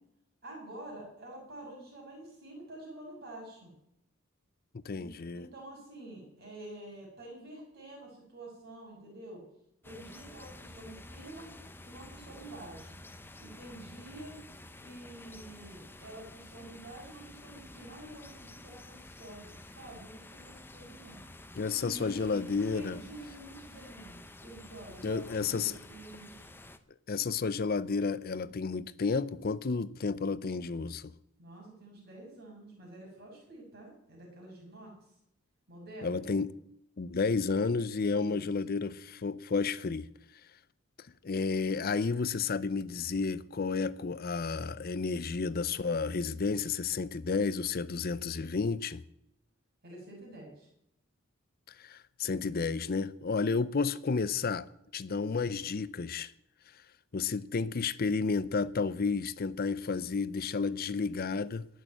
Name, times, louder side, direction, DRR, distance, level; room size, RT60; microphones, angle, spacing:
voice 1, 0.4-3.7 5.0-5.1 5.3-9.4 9.8-11.5 11.8-13.0 13.4-14.4 14.8-19.5 19.7-21.2 21.8-22.4 22.7-26.5 31.4-34.9 35.7-36.3 38.0-38.8 49.8-50.7, right 1 dB, 50° right, 6.5 m, -48 dB
voice 2, 4.8-5.5 21.6-23.0 25.0-25.7 27.1-31.1 36.0-36.5 37.0-40.1 41.2-49.0 51.8-54.7 54.9-56.3 57.1-61.7, left 4 dB, 45° left, 0.5 m, -31 dB
sound 1, 9.8-26.8, left 1 dB, 10° left, 0.7 m, -50 dB
19.0 x 6.6 x 9.0 m
head